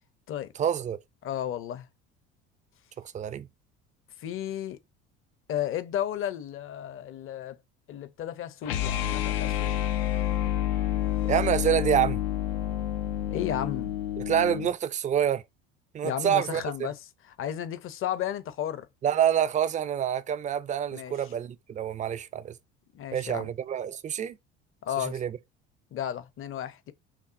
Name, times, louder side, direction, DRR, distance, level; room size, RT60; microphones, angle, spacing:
voice 1, 0.6-1.0 3.1-3.5 11.3-12.2 14.3-15.4 15.9-16.6 19.0-22.5 23.1-24.4 25.0-25.3, right 9 dB, 25° right, 0.4 m, -27 dB
voice 2, 1.2-1.9 4.2-4.8 5.5-7.6 7.9-9.8 13.3-13.9 16.0-18.9 20.9-21.3 22.9-23.5 24.8-25.2 25.9-26.9, left 10 dB, 40° left, 0.7 m, -33 dB
sound 1, 8.6-14.7, left 12 dB, 80° left, 0.6 m, -29 dB
5.9 x 2.2 x 2.6 m
hypercardioid pair, 70°, 31 cm